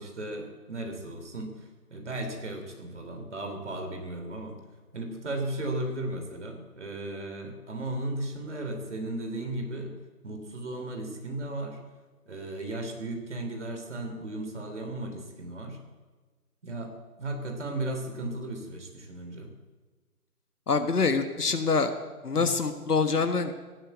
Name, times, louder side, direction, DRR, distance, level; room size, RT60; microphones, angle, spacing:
voice 1, 0.0-4.6 4.9-9.9 10.2-11.8 12.3-15.8 16.6-16.9 17.2-19.5 22.3-22.5, right 2 dB, 50° right, 4 dB, 3.4 m, -35 dB
voice 2, 20.7-21.9 22.2-23.5, left 4 dB, 80° left, 8 dB, 1.5 m, -25 dB
16.5 x 8.9 x 8.5 m, 1.3 s
figure-of-eight pair, 170°, 46 cm